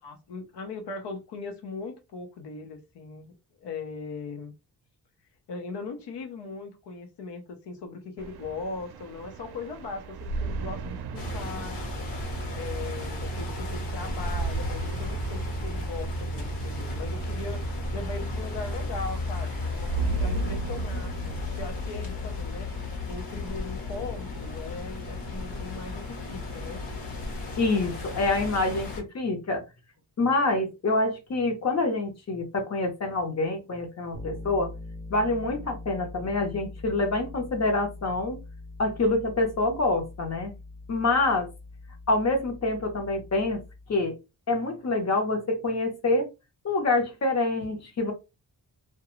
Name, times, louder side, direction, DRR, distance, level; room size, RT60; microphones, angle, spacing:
voice 1, 0.0-3.3 3.6-4.5 5.5-11.8 12.5-17.7 17.9-22.7 23.1-26.8, left 4 dB, 85° left, 0.8 m, -39 dB
sound 1, 8.2-25.2, right 3 dB, 70° right, 0.5 m, -37 dB
sound 2, 11.1-29.0, left 1 dB, 55° left, 1.1 m, -34 dB
voice 2, 27.6-29.6 30.2-34.7 35.1-38.4 38.8-40.5 40.9-41.5 42.1-43.6 43.9-44.1 44.5-46.3 46.6-48.1, left 2 dB, 40° left, 0.8 m, -26 dB
Bass guitar, 34.1-44.0, left 2 dB, 15° right, 0.6 m, -43 dB
2.4 x 2.2 x 3.0 m
wide cardioid pair, 145°, 40 cm